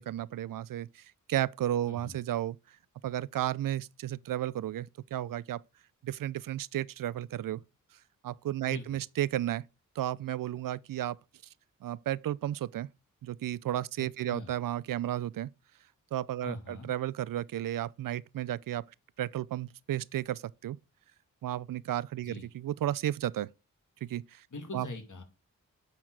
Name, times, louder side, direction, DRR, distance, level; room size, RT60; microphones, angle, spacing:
voice 1, 0.0-2.8 3.0-5.6 6.0-7.6 8.2-9.6 10.0-11.2 11.8-12.9 13.2-15.5 16.1-18.8 19.2-20.8 21.4-23.5 24.0-24.5 24.7-24.9, right 12 dB, 75° right, 0.5 m, -33 dB
voice 2, 1.8-2.2 8.7-9.0 14.2-14.5 16.4-16.9 22.2-22.5 24.5-25.2, left 2 dB, 60° left, 2.4 m, -42 dB
9.5 x 4.5 x 4.6 m
cardioid pair, 50°, 34 cm